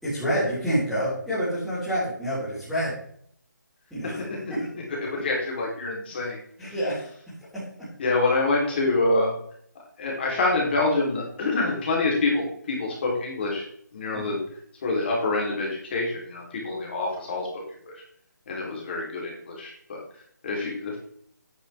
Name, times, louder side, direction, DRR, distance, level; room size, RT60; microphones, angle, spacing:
voice 1, 0.0-3.0 3.9-4.2 4.5-4.6 6.6-7.1 14.1-14.3, equal, ahead, -16 dB, 3.9 m, -27 dB
voice 2, 4.2-6.4 8.0-9.3 10.0-13.6 13.9-14.4 14.8-17.9 18.5-20.0 20.4-21.0, left 2 dB, 35° left, -2 dB, 3.5 m, -26 dB
9.6 x 8.5 x 3.5 m, 0.63 s
figure-of-eight pair, 165°, 10 cm